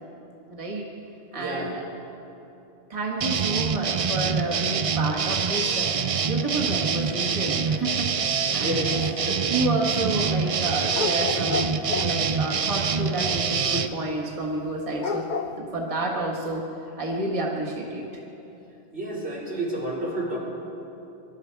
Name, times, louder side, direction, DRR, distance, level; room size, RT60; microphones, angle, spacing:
voice 1, 0.5-0.9 1.3-1.9 2.9-5.9 6.2-9.1 9.5-15.2 15.6-16.6 17.0-18.2, right 2 dB, 30° right, -3 dB, 1.6 m, -30 dB
voice 2, 1.3-1.7 8.6-9.4 18.9-20.4, right 1 dB, 75° right, -6 dB, 4.1 m, -30 dB
sound 1, 3.2-13.9, right 6 dB, 45° right, 0.4 m, -25 dB
sound 2, 10.9-12.2 15.0-15.6, left 4 dB, 50° left, 0.7 m, -29 dB
23.5 x 12.5 x 4.7 m, 2.9 s
omnidirectional pair, 1.1 m